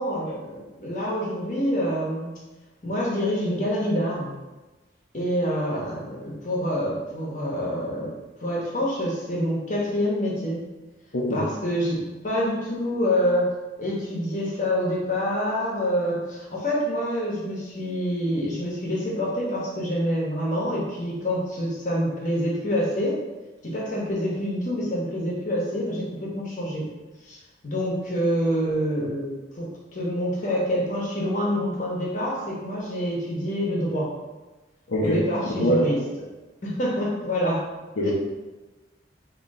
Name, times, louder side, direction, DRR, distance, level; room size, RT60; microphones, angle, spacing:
voice 1, 0.0-2.4 2.8-4.4 5.1-8.1 8.4-10.6 11.3-23.2 23.6-26.9 27.2-34.2 35.0-36.0 36.6-37.7 38.0-38.1, equal, 40° left, -3 dB, 1.0 m, -27 dB
voice 2, 11.1-11.5 34.9-35.2 35.6-35.9 38.0-38.1, equal, 80° left, -7 dB, 0.8 m, -23 dB
3.7 x 2.9 x 4.2 m, 1.2 s
head